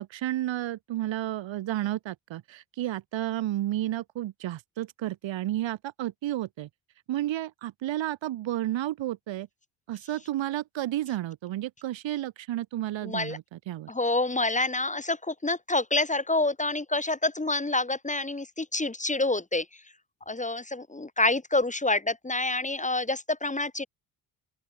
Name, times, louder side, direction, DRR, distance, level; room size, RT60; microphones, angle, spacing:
voice 1, 0.0-6.7 7.1-9.5 9.9-13.9, right 14 dB, 70° right, 4.2 m, -32 dB
voice 2, 13.0-13.4 13.9-19.6 20.3-23.9, left 2 dB, 15° left, 6.8 m, -27 dB
open air
supercardioid pair, 80°, 46 cm